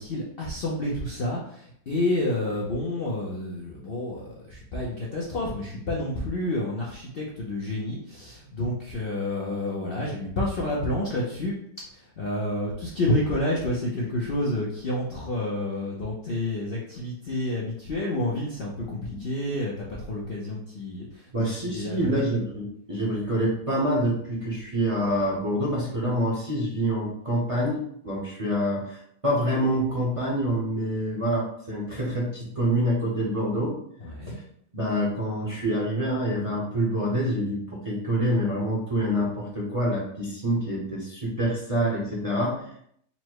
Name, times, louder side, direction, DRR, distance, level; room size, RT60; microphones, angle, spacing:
voice 1, 0.0-11.5 11.9-21.3 21.5-22.2 34.0-34.4, left 1 dB, 55° left, -3 dB, 0.6 m, -29 dB
voice 2, 21.3-33.8 34.3-34.4 34.7-42.6, equal, 30° right, -5 dB, 0.7 m, -26 dB
4.1 x 2.1 x 4.5 m, 0.69 s
omnidirectional pair, 1.7 m